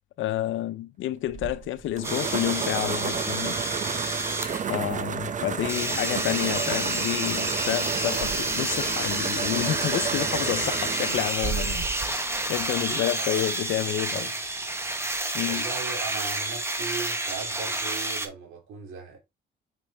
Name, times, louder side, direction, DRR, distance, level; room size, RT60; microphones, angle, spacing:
voice 1, 0.2-3.6 4.7-14.3 15.3-15.6, left 13 dB, 80° left, 0.7 m, -29 dB
sound 1, 1.3-13.1, right 7 dB, 40° right, 0.7 m, -32 dB
sound 2, 2.0-4.7 5.7-18.3, right 2 dB, 15° right, 1.3 m, -29 dB
voice 2, 4.8-5.4 12.7-13.4 13.8-13.9 14.1-14.3 15.4-19.2, right 5 dB, 85° right, 2.8 m, -39 dB
6.1 x 5.3 x 3.5 m
cardioid pair, 90°, 20 cm